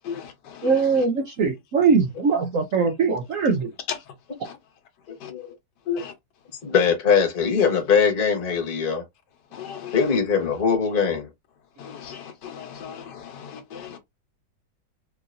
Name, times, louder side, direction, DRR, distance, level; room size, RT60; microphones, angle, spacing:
voice 1, 0.0-1.0 3.9-4.0 4.4-4.6 5.2-5.3 6.0-6.1 9.5-10.1 11.8-14.0, left 8 dB, 70° left, 1.6 m, -37 dB
voice 2, 0.6-3.7, right 5 dB, 60° right, 0.9 m, -21 dB
voice 3, 6.6-9.0 9.9-11.3, left 6 dB, 35° left, 1.2 m, -21 dB
4.6 x 2.7 x 2.5 m
omnidirectional pair, 1.9 m